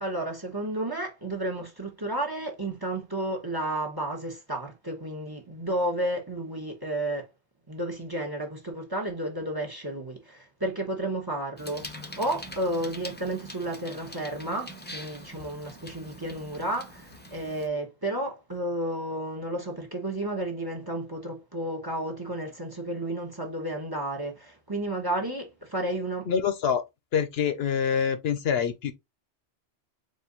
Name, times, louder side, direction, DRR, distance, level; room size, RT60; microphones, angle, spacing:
voice 1, 0.0-7.3 7.7-26.3, right 1 dB, 20° right, 1.0 m, -32 dB
Bicycle, 11.6-17.7, left 1 dB, 10° left, 0.6 m, -44 dB
voice 2, 26.3-26.8 27.1-28.9, left 7 dB, 70° left, 0.8 m, -26 dB
4.3 x 2.6 x 3.7 m
omnidirectional pair, 1.1 m